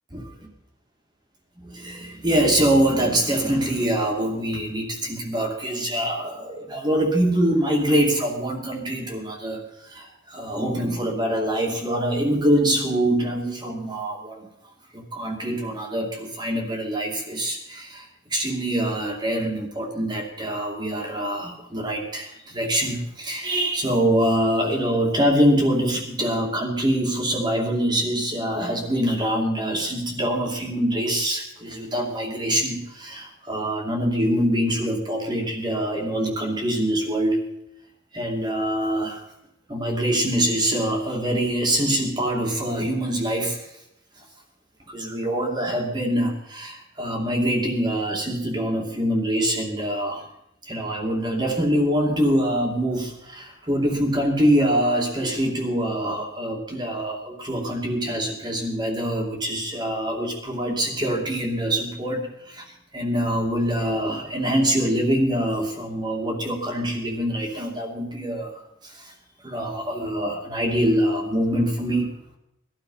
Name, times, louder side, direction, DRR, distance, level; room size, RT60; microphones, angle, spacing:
voice 1, 1.6-14.5 14.9-37.4 38.1-39.3 39.7-43.7 44.9-50.2 50.6-69.1 69.4-72.1, right 1 dB, 20° right, 1 dB, 2.6 m, -24 dB
20.0 x 12.5 x 5.7 m, 0.83 s
head